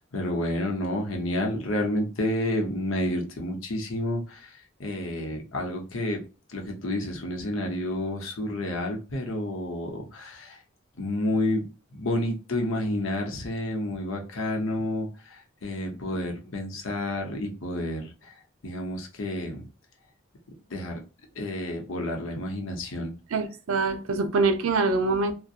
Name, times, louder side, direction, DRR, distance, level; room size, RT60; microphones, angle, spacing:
voice 1, 0.0-4.5 4.8-6.2 6.5-10.6 11.0-11.6 11.9-18.1 18.6-19.6 20.7-21.0 21.4-23.1, left 1 dB, 75° left, 0.7 m, -30 dB
voice 2, 23.3-25.3, right 3 dB, 90° right, 0.5 m, -24 dB
2.7 x 2.1 x 2.4 m
head